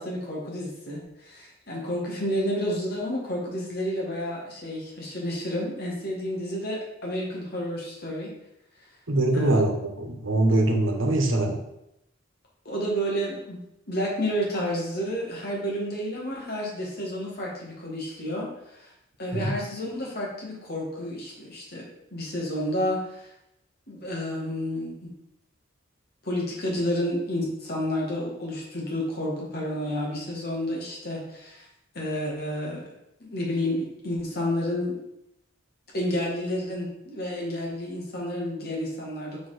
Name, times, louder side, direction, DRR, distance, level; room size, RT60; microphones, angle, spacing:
voice 1, 0.0-8.3 9.3-9.6 12.7-13.6 13.9-18.9 19.2-21.8 22.1-23.3 23.9-25.1 26.2-31.7 31.9-32.9 33.2-35.0 35.9-39.4, equal, 55° left, -3 dB, 1.9 m, -30 dB
voice 2, 9.1-11.6 19.3-19.5, right 2 dB, 85° right, 4 dB, 1.1 m, -23 dB
5.1 x 4.4 x 5.0 m, 0.83 s
head